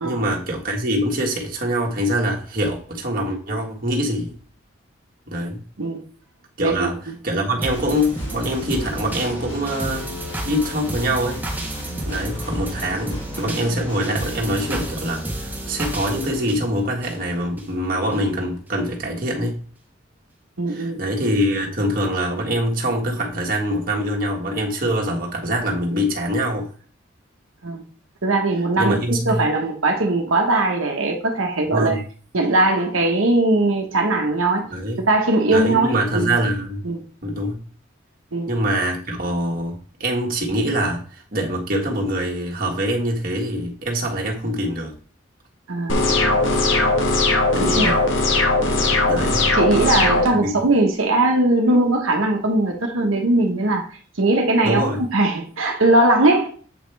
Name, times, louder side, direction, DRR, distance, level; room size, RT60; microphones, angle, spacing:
voice 1, 0.0-4.3 5.3-5.6 6.6-7.0 7.2-10.1 10.4-11.4 12.0-19.6 20.7-26.7 28.8-29.5 31.7-32.0 34.7-35.0 35.5-36.8 37.2-37.6 38.5-45.0 47.5-48.0 48.6-48.8 49.1-49.5 50.3-50.5 54.6-55.0, equal, 45° right, 1.6 m, -24 dB
voice 2, 6.6-7.2 20.6-21.0 27.6-27.8 28.2-29.0 29.3-32.0 32.3-34.7 35.0-36.4 36.8-37.0 38.3-38.5 45.7-46.0 47.6-47.9 49.6-54.8 55.1-56.5, right 2 dB, 90° right, 1.1 m, -20 dB
sound 1, 7.6-17.7 18.1-18.2, right 1 dB, 10° right, 1.2 m, -31 dB
Guitar, 7.7-14.9, left 1 dB, 30° left, 2.1 m, -38 dB
sound 2, 45.9-50.3, left 2 dB, 75° left, 1.4 m, -19 dB
8.1 x 5.2 x 3.4 m
head